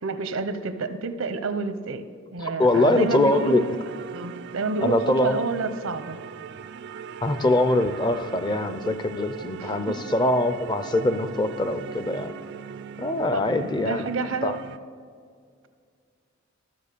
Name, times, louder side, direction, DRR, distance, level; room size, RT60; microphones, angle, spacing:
voice 1, 0.0-2.0 2.3-3.8 4.1-6.2 9.5-10.0 13.3-14.6, right 4 dB, 85° right, 10 dB, 0.7 m, -29 dB
voice 2, 2.4-3.6 4.8-5.4 7.2-12.3 13.0-14.0 14.4-14.6, left 1 dB, 20° left, 11 dB, 0.5 m, -23 dB
sound 1, 2.7-14.8, right 7 dB, 60° right, 0.4 m, -39 dB
13.5 x 7.0 x 6.7 m, 2.1 s
head